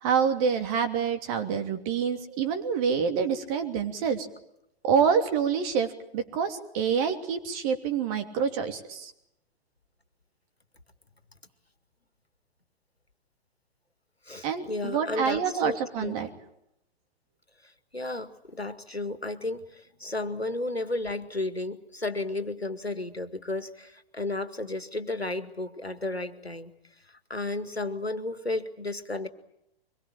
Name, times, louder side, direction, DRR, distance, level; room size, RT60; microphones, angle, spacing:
voice 1, 0.0-4.3 4.8-9.1 14.4-16.3, right 7 dB, 35° right, 7 dB, 3.0 m, -27 dB
voice 2, 14.3-16.1 17.9-26.7 27.1-29.3, left 2 dB, 90° left, 10 dB, 2.0 m, -33 dB
24.5 x 21.5 x 9.0 m, 0.79 s
figure-of-eight pair, 110°, 30 cm